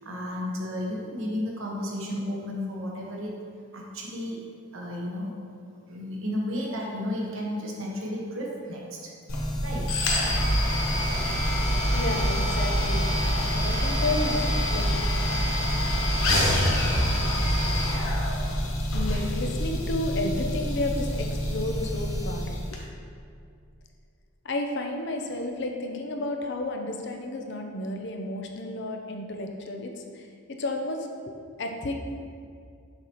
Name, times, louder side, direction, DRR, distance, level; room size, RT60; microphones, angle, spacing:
voice 1, 0.0-3.4 3.7-4.4 4.7-5.3 5.9-9.1 9.4-10.2, left 1 dB, 70° right, -2 dB, 1.1 m, -33 dB
sound 1, 9.3-22.8, equal, 80° left, 1.0 m, -26 dB
voice 2, 11.9-14.4 14.7-14.9 18.9-22.8 24.4-31.1 31.6-31.9, left 2 dB, 55° left, 3 dB, 0.6 m, -32 dB
6.5 x 5.7 x 3.0 m, 2.3 s
head